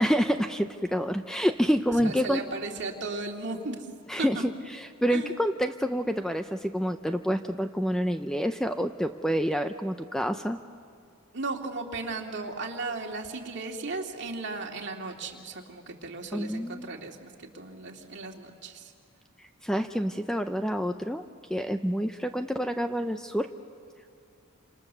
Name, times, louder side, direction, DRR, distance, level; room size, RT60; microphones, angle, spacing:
voice 1, 0.0-2.4 4.1-10.6 16.3-16.9 19.6-23.5, equal, 5° left, 7 dB, 0.5 m, -28 dB
voice 2, 2.0-3.9 4.2-4.4 5.1-5.3 11.3-18.9, right 3 dB, 55° right, 1 dB, 2.5 m, -36 dB
29.0 x 26.5 x 6.8 m, 2.4 s
head